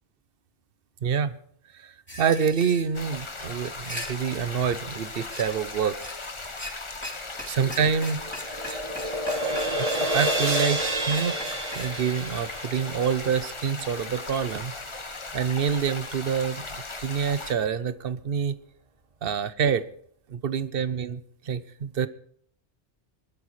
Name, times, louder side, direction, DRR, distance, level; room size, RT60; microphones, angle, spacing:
voice 1, 1.0-1.4 1.7-5.9 7.5-8.2 8.7-8.8 9.1-9.2 9.7-11.4 11.7-14.8 15.3-18.5 19.2-19.9 20.3-22.1, right 7 dB, 60° right, 14 dB, 0.9 m, -27 dB
sound 1, 2.1-2.9 3.7-4.1 5.3-5.4 6.0-6.1 6.5-6.7 7.0-7.1 7.4-7.5 7.7-11.9, left 1 dB, 10° left, 3.5 m, -37 dB
sound 2, 2.9-17.5, left 3 dB, 25° left, 1.1 m, -38 dB
sound 3, 7.7-14.0, right 1 dB, 35° right, 1.3 m, -30 dB
23.0 x 12.5 x 3.2 m, 0.64 s
omnidirectional pair, 1.2 m